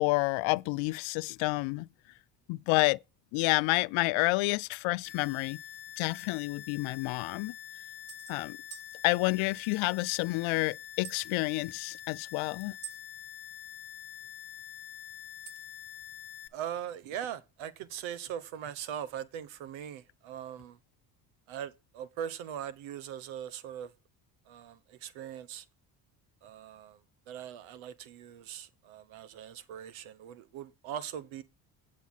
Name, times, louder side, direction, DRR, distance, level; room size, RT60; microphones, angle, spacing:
voice 1, 0.0-1.9 2.5-3.0 3.3-5.6 6.0-7.5 8.3-8.6 9.0-12.7, left 24 dB, 75° left, 0.5 m, -29 dB
sound 1, 5.1-16.5, left 10 dB, 50° left, 1.0 m, -46 dB
sound 2, 5.7-5.8 6.8-6.9 7.2-7.3 8.1-8.4 8.7-8.9 11.0-11.3 12.8-13.0 15.5-15.8, right 11 dB, 30° right, 0.7 m, -46 dB
voice 2, 16.5-20.8 21.5-23.9 24.5-25.7 26.4-27.0 27.3-31.4, right 9 dB, 75° right, 1.2 m, -40 dB
8.4 x 8.4 x 4.0 m
supercardioid pair, 75°, 48 cm